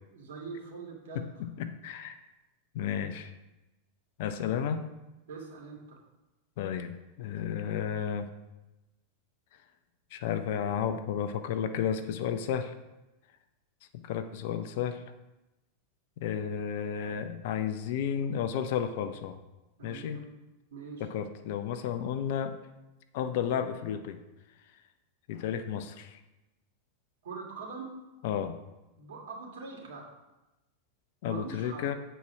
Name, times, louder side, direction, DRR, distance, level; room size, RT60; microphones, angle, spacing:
voice 1, 0.1-1.2 5.3-6.0 19.8-20.2 20.7-21.1 27.2-27.9 29.0-30.1 31.2-31.9, right 4 dB, 60° right, -2 dB, 2.5 m, -42 dB
voice 2, 1.1-2.2 2.7-3.3 4.2-4.9 6.6-8.3 10.1-12.7 13.9-15.0 16.2-19.4 19.8-20.2 21.0-22.6 23.1-24.2 25.3-26.2 28.2-28.6 31.2-31.9, left 8 dB, 50° left, 9 dB, 0.7 m, -32 dB
8.2 x 4.5 x 6.2 m, 1.0 s
figure-of-eight pair, 90°, 0 cm